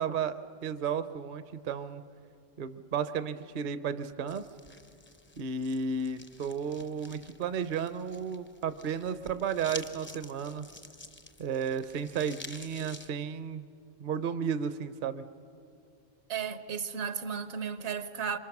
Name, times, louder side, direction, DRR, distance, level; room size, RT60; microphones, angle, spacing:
voice 1, 0.0-2.0 2.6-4.5 5.4-10.7 11.4-13.6 14.0-15.2, right 6 dB, 50° right, 0.7 m, -33 dB
sound 1, 4.3-13.1, left 2 dB, 20° left, 0.3 m, -49 dB
voice 2, 16.3-18.4, right 7 dB, 65° right, 1.1 m, -34 dB
26.5 x 24.0 x 6.0 m
omnidirectional pair, 1.3 m